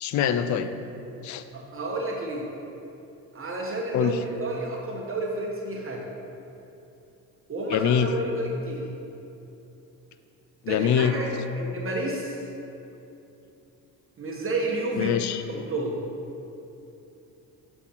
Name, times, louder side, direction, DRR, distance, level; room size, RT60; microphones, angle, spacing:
voice 1, 0.0-0.7 1.2-1.4 3.9-4.2 7.7-8.1 10.6-11.1 15.0-15.4, left 9 dB, 50° left, 11 dB, 0.5 m, -24 dB
voice 2, 1.5-2.5 3.3-6.0 7.5-8.8 10.7-12.4 14.2-15.1 15.5-16.0, right 2 dB, 35° right, -1 dB, 1.0 m, -31 dB
7.1 x 4.5 x 4.3 m, 2.9 s
supercardioid pair, 65°, 39 cm